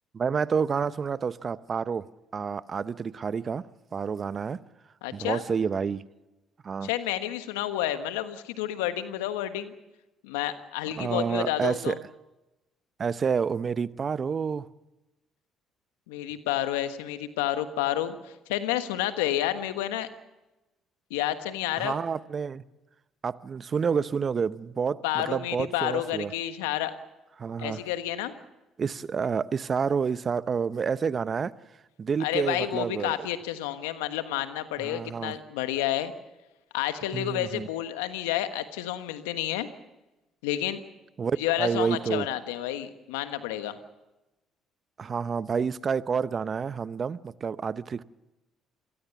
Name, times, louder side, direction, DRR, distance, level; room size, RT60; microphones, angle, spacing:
voice 1, 0.1-2.1 2.3-3.6 3.9-4.6 5.1-6.0 6.6-6.9 11.0-12.0 13.0-14.7 21.8-22.6 23.2-26.3 27.4-27.8 28.8-31.5 32.0-33.2 34.8-35.4 37.1-37.7 41.2-42.3 45.0-48.0, right 6 dB, 45° right, 0.8 m, -29 dB
voice 2, 5.0-5.4 6.8-9.7 10.2-12.0 16.1-20.1 21.1-22.0 25.0-26.9 27.6-28.3 32.2-36.1 36.7-39.7 40.4-40.8 41.4-43.8, left 12 dB, 85° left, 1.3 m, -30 dB
27.5 x 18.5 x 7.1 m
hypercardioid pair, 55°, 0 cm